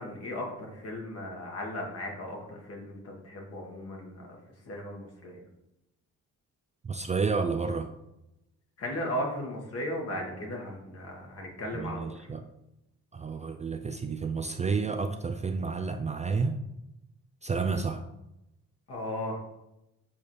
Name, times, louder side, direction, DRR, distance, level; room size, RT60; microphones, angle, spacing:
voice 1, 0.0-4.4 4.7-5.4 8.8-12.3 18.9-19.4, left 1 dB, 50° left, 0 dB, 1.9 m, -36 dB
voice 2, 6.8-7.9 11.7-12.4 13.1-16.6 17.4-18.0, right 4 dB, 25° right, 6 dB, 0.4 m, -30 dB
7.0 x 4.3 x 3.3 m, 0.90 s
cardioid pair, 90°, 30 cm